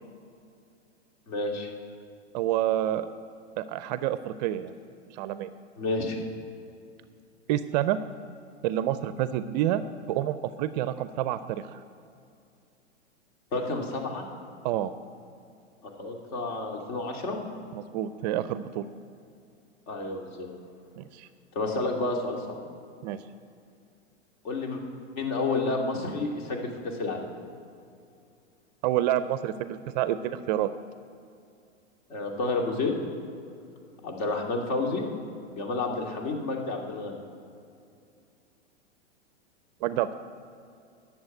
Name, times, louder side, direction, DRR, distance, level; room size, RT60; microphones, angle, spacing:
voice 1, 1.3-1.7 5.8-6.2 13.5-14.3 16.0-17.4 19.9-20.5 21.5-22.6 24.4-24.8 25.2-27.2 32.1-32.9 34.0-35.0 35.5-37.2, left 3 dB, 50° left, 1 dB, 2.6 m, -30 dB
voice 2, 2.3-3.1 3.6-4.7 5.1-5.5 7.5-8.0 8.6-11.8 14.6-14.9 17.7-18.9 21.0-21.3 23.0-23.2 28.8-30.7 39.8-40.1, right 12 dB, 40° right, 13 dB, 0.5 m, -28 dB
11.0 x 7.2 x 9.1 m, 2.5 s
hypercardioid pair, 120°, 35 cm